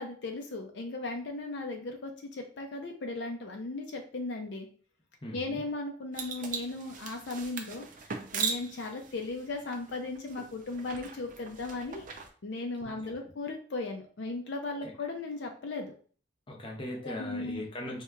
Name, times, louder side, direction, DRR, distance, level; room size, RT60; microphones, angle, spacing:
voice 1, 0.0-4.7 5.3-12.0 12.4-15.9 17.0-17.6, left 2 dB, 60° left, 3 dB, 0.5 m, -37 dB
voice 2, 5.2-5.6 12.8-13.1 16.5-18.0, left 1 dB, 25° left, -1 dB, 0.7 m, -39 dB
sound 1, 6.1-12.3, right 5 dB, 45° right, 0.4 m, -39 dB
4.3 x 2.8 x 2.3 m, 0.43 s
head